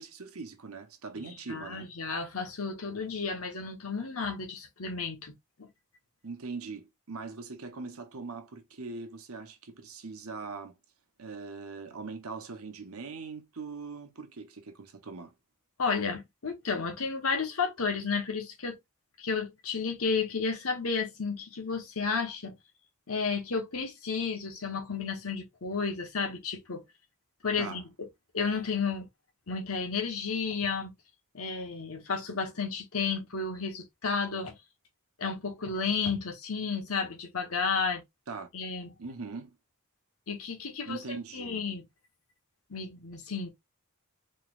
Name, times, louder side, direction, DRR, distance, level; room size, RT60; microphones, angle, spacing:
voice 1, 0.0-1.9 6.2-10.8 11.2-15.3 27.6-27.8 38.3-38.5 39.0-39.6 40.9-41.7, right 4 dB, 80° right, 1.0 m, -41 dB
voice 2, 1.5-5.3 5.6-5.7 15.8-18.8 19.2-22.6 23.1-26.8 27.4-27.8 28.3-29.1 29.5-30.9 31.3-34.5 35.2-38.0 38.5-38.9 40.3-41.8 42.7-43.5, left 5 dB, 80° left, 1.2 m, -32 dB
4.2 x 3.3 x 2.5 m
head